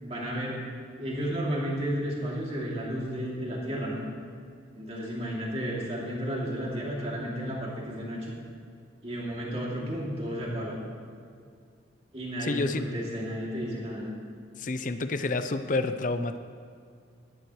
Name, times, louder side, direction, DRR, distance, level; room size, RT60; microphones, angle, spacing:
voice 1, 0.0-0.6 1.0-4.0 4.7-8.3 9.0-10.8 12.1-14.1, equal, 30° right, -4 dB, 2.7 m, -32 dB
voice 2, 12.4-12.8 14.6-16.4, left 3 dB, 45° left, 10 dB, 0.5 m, -29 dB
17.5 x 12.5 x 3.1 m, 2.2 s
head